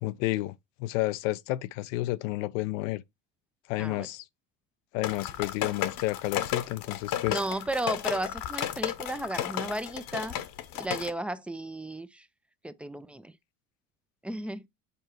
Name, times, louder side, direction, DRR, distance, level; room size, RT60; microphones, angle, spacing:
voice 1, 0.0-0.5 0.8-3.0 3.7-4.2 4.9-7.4, left 18 dB, 80° left, 0.6 m, -31 dB
sound 1, 5.0-11.1, left 11 dB, 60° left, 1.0 m, -33 dB
voice 2, 7.3-10.4 10.7-12.3 12.6-13.3 14.2-14.7, right 1 dB, 5° right, 0.4 m, -34 dB
6.9 x 4.5 x 3.0 m
supercardioid pair, 100°, 38 cm